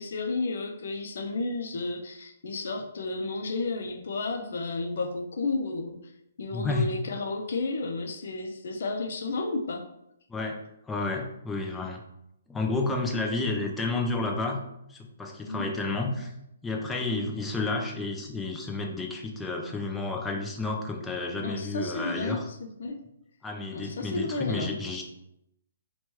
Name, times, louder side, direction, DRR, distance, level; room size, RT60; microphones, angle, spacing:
voice 1, 0.0-6.0 6.4-9.9 15.5-15.7 21.4-23.0 23.7-24.7, left 3 dB, 65° left, 5 dB, 0.5 m, -32 dB
voice 2, 6.5-6.9 10.3-10.6 10.9-12.0 12.5-14.6 14.9-16.3 16.6-22.4 23.4-25.0, left 3 dB, 5° left, 2 dB, 0.3 m, -31 dB
3.0 x 2.2 x 3.0 m, 0.81 s
hypercardioid pair, 165°, 0 cm